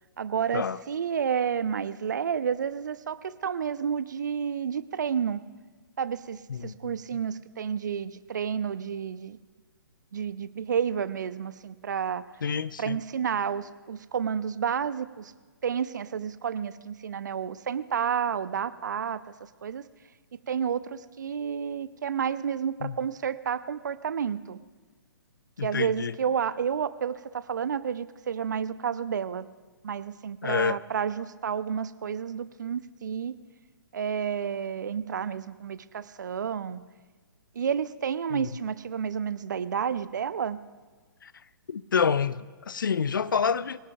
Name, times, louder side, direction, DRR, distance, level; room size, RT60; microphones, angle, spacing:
voice 1, 0.2-5.4 6.0-9.4 10.1-12.2 12.8-15.3 15.6-19.2 19.6-19.8 20.3-24.6 25.6-29.5 29.8-33.3 33.9-36.8 37.6-40.6, right 7 dB, 50° right, 0.6 m, -30 dB
voice 2, 6.5-7.2 12.4-13.0 22.8-23.0 25.6-26.2 30.4-30.8 38.3-38.5 41.2-41.3 41.7-43.8, left 6 dB, 60° left, 0.5 m, -28 dB
25.0 x 17.0 x 2.3 m
figure-of-eight pair, 125°, 12 cm